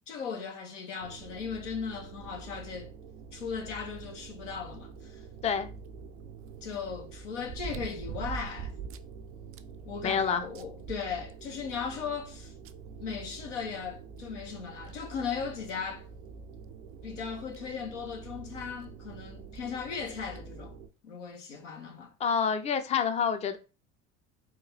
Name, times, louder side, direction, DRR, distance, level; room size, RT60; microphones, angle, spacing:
voice 1, 0.1-2.9 3.3-5.2 6.6-8.8 9.9-12.5 13.0-16.1 17.0-20.7 21.0-22.1, left 6 dB, 90° left, 0.9 m, -37 dB
sound 1, 1.0-20.9, right 5 dB, 85° right, 0.7 m, -47 dB
sound 2, 5.5-5.6 7.4-9.1 9.5-9.6 10.1-10.2 10.6-11.7 12.7-12.8 14.2-14.3 14.9-15.0 15.7-15.9 17.2-17.3 17.5-17.6 19.3-19.7 20.4-20.5, right 6 dB, 40° right, 0.4 m, -40 dB
voice 2, 10.0-10.4 22.2-23.6, left 6 dB, 20° left, 0.4 m, -27 dB
3.7 x 2.3 x 3.2 m
hypercardioid pair, 70°, 35 cm